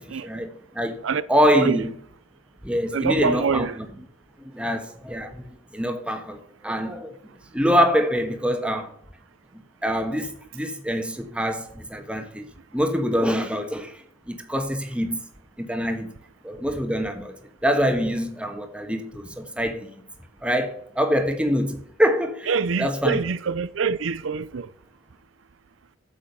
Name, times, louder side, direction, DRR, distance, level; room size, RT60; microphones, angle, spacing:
voice 1, 0.0-1.0 1.3-1.9 2.6-3.9 4.4-7.1 7.5-8.9 9.8-12.5 12.7-15.2 15.6-16.1 16.4-17.3 17.6-19.9 20.4-22.5 22.8-23.2, equal, 5° right, 1.4 m, -25 dB
voice 2, 2.9-3.8 22.5-24.7, right 5 dB, 80° right, 0.5 m, -25 dB
8.7 x 7.6 x 6.6 m
head